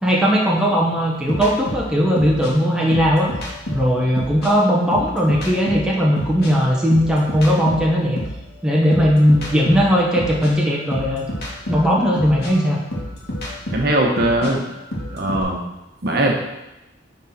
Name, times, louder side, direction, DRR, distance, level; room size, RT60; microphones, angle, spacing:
voice 1, 0.0-3.3 3.7-8.2 8.6-11.3 11.7-12.8, equal, 5° right, -4 dB, 1.0 m, -18 dB
sound 1, 1.3-4.5 4.9-8.5 8.9-15.4, equal, 55° left, 1.9 m, -30 dB
voice 2, 13.7-14.6 15.1-15.6 16.0-16.3, right 1 dB, 55° right, 0 dB, 1.2 m, -19 dB
10.0 x 4.0 x 4.3 m, 0.98 s
head